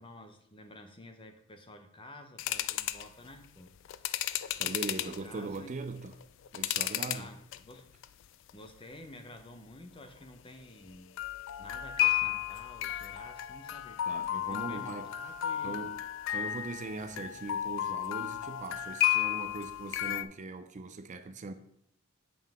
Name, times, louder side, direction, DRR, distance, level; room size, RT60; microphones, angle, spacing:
voice 1, 0.0-3.7 5.0-5.7 7.1-7.9 8.5-11.2 11.6-14.0 14.5-15.9, left 1 dB, 25° left, 0.7 m, -50 dB
sound 1, 2.4-3.1 3.8-5.2 5.8-7.2 7.5-8.0 8.5-8.7 11.2-20.2, left 12 dB, 60° left, 0.3 m, -33 dB
voice 2, 4.6-6.1 6.5-7.3 14.1-15.1 15.6-16.0 16.3-21.5, right 3 dB, 35° right, 0.4 m, -40 dB
7.6 x 5.5 x 3.5 m
head